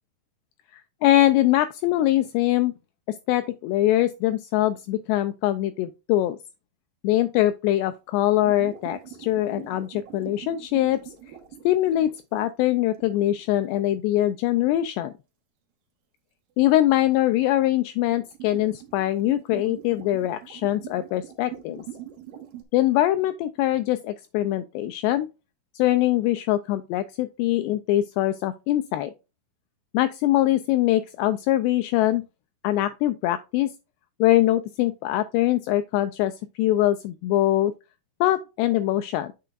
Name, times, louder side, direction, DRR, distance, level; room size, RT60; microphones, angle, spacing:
voice 1, 0.7-2.7 3.3-6.4 7.0-11.1 11.7-15.1 16.6-21.8 22.7-25.3 25.7-29.1 29.9-32.2 32.6-33.7 34.2-37.7 38.2-39.3, left 14 dB, 90° left, 2.4 m, -23 dB
sound 1, 8.3-12.3 13.0-13.4 17.5-22.6, right 11 dB, 65° right, 2.3 m, -43 dB
9.0 x 6.6 x 2.4 m
omnidirectional pair, 5.4 m